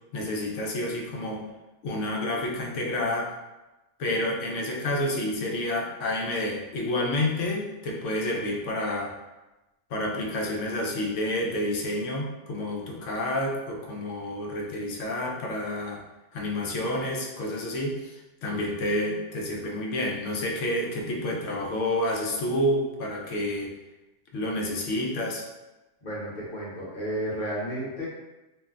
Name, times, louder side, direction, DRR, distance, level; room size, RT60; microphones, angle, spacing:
voice 1, 0.1-1.4 1.8-3.3 4.0-9.1 9.9-16.0 16.3-18.1 18.4-23.7 24.3-25.4, left 1 dB, 90° left, -1 dB, 1.0 m, -29 dB
voice 2, 26.0-28.1, right 1 dB, 45° left, -6 dB, 1.0 m, -32 dB
2.5 x 2.1 x 3.6 m, 1.0 s
omnidirectional pair, 1.2 m